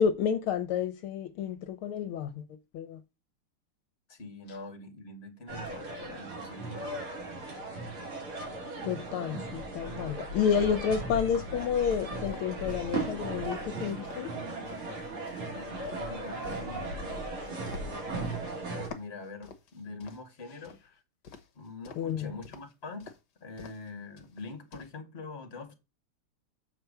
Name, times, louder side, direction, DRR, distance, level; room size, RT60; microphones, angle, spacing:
voice 1, 0.0-2.4 2.7-3.0 8.8-14.3 22.0-22.3, left 7 dB, 75° left, 1.6 m, -30 dB
voice 2, 4.1-7.1 15.5-17.1 17.5-18.4 18.9-21.0 21.5-23.1 23.4-25.7, left 3 dB, 30° left, 1.9 m, -44 dB
sound 1, 5.5-18.9, right 2 dB, 75° right, 3.8 m, -37 dB
sound 2, 12.3-14.2 14.7-18.4 18.8-20.8 21.2-22.1 22.4-22.7 23.0-23.2 23.6-23.9 24.2-24.9, left 5 dB, 55° left, 1.6 m, -49 dB
7.3 x 4.5 x 6.7 m
omnidirectional pair, 2.4 m